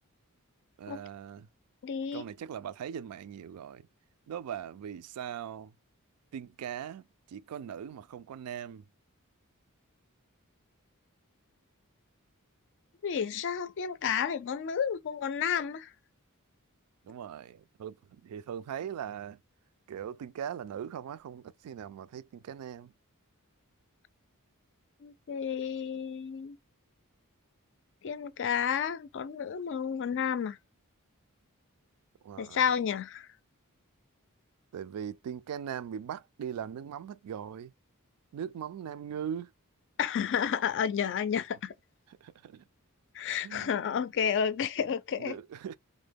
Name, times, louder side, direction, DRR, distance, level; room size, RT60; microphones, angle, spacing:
voice 1, 0.8-1.5 2.1-3.9 4.3-5.7 6.3-8.8 17.0-19.4 19.9-22.9 32.2-32.6 34.7-37.7 38.3-39.5 42.2-42.6 43.4-44.0 45.1-45.8, right 8 dB, 80° right, 0.3 m, -40 dB
voice 2, 1.8-2.3 13.0-15.9 25.0-26.6 28.0-30.6 32.4-33.3 40.0-41.7 43.1-45.4, left 7 dB, 55° left, 0.4 m, -31 dB
3.7 x 2.1 x 3.4 m
head